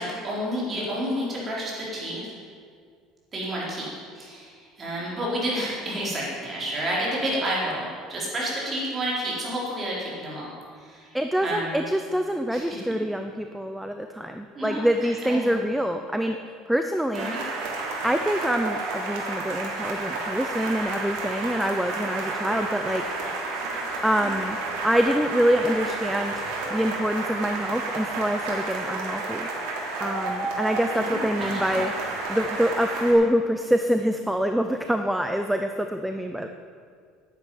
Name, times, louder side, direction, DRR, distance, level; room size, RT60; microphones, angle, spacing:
voice 1, 0.0-2.3 3.3-3.9 4.1-11.8 12.5-12.8 14.5-15.6 17.1-17.4 31.4-31.8, equal, 20° right, -5 dB, 4.1 m, -30 dB
voice 2, 11.1-16.4 16.7-17.3 18.0-23.0 24.0-24.6 24.8-26.4 26.7-29.5 30.0-31.9 32.3-36.5, equal, ahead, 6 dB, 0.5 m, -25 dB
sound 1, 17.1-33.1, right 3 dB, 80° right, 3.2 m, -31 dB
10.5 x 8.8 x 9.2 m, 2.1 s
cardioid pair, 160°, 0 cm